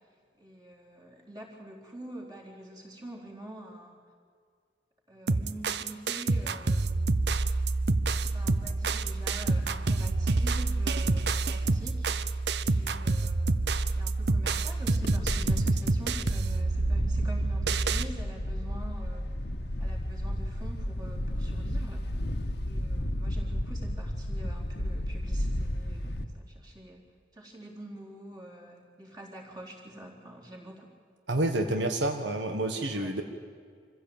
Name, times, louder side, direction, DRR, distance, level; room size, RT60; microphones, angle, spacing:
voice 1, 0.4-4.0 5.1-7.1 8.3-12.2 12.7-13.6 13.9-19.3 19.8-22.1 22.6-27.0 27.3-30.9 32.9-33.1, right 1 dB, 20° right, -1 dB, 4.0 m, -46 dB
sound 1, 5.3-18.1, right 3 dB, 70° right, 0.8 m, -27 dB
Wind, 14.9-26.2, left 1 dB, 70° left, 1.5 m, -33 dB
voice 2, 31.3-33.2, right 1 dB, 90° right, 5 dB, 1.5 m, -28 dB
25.0 x 15.5 x 8.9 m, 2.1 s
head